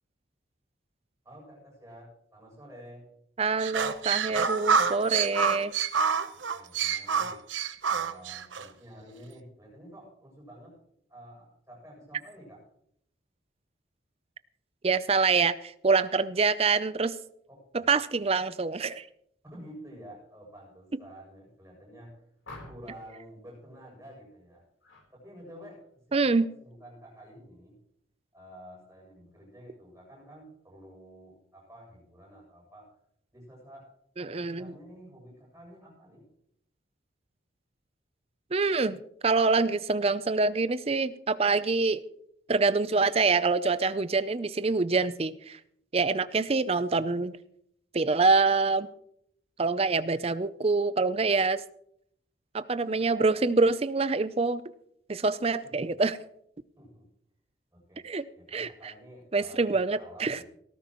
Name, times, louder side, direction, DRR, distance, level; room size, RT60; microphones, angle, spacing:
voice 1, 1.2-3.1 6.3-7.4 7.9-10.8 11.1-12.6 17.5-17.9 19.4-22.2 22.7-24.6 25.1-25.8 26.1-27.8 28.3-32.9 33.3-33.9 34.2-36.2 55.6-55.9 56.8-57.1 57.7-58.1 58.4-60.5, equal, 15° right, -3 dB, 7.5 m, -50 dB
voice 2, 3.4-5.7 14.8-17.1 17.7-19.1 26.1-26.5 34.2-34.7 38.5-42.0 42.5-45.6 45.9-47.4 47.9-48.9 49.6-51.6 52.5-54.6 55.1-56.2 58.0-58.2 58.5-58.7 59.3-60.4, right 4 dB, 30° right, 15 dB, 0.5 m, -26 dB
sound 1, 3.6-8.7, right 6 dB, 75° right, 0.9 m, -27 dB
sound 2, 22.4-23.1 24.8-25.1 25.5-25.8, left 2 dB, 85° left, 3.8 m, -47 dB
18.0 x 14.5 x 3.1 m, 0.72 s
head